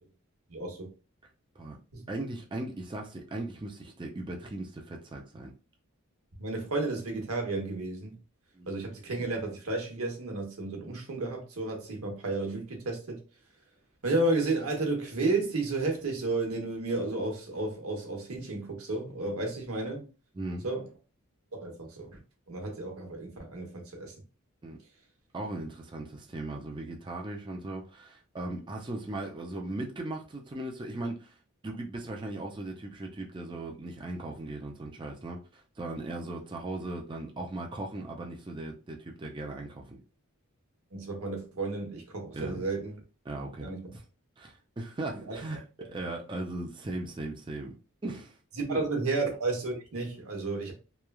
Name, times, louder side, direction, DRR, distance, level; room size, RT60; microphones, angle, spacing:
voice 1, 0.5-0.9 1.9-2.0 6.4-8.2 8.7-13.2 14.0-20.1 20.6-20.8 21.5-22.1 22.5-24.1 40.9-43.0 43.6-43.9 45.1-45.4 48.6-50.7, right 2 dB, 80° right, 0.9 m, -32 dB
voice 2, 2.1-5.5 8.5-8.7 20.3-20.7 24.6-24.8 25.3-31.3 31.6-40.0 42.3-42.7 43.3-44.0 44.4-47.8 48.0-48.4 48.7-48.8, right 2 dB, 20° right, 0.4 m, -38 dB
3.0 x 2.2 x 2.2 m
head